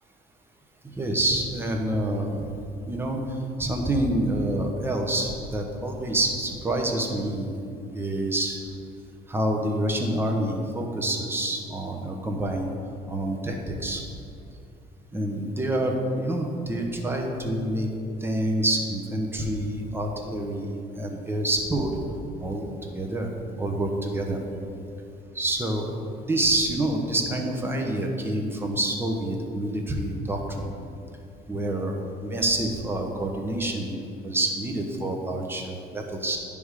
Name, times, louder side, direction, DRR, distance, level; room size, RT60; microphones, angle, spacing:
voice 1, 0.8-2.5 2.9-3.2 3.6-7.5 7.9-8.6 9.3-12.7 13.1-14.0 15.1-17.9 18.2-21.9 22.4-22.7 22.9-24.4 25.3-25.9 26.3-30.7 31.5-34.0 34.2-36.4, right 1 dB, 15° right, 1 dB, 0.9 m, -27 dB
9.7 x 3.6 x 4.9 m, 2.5 s
cardioid pair, 110°, 17 cm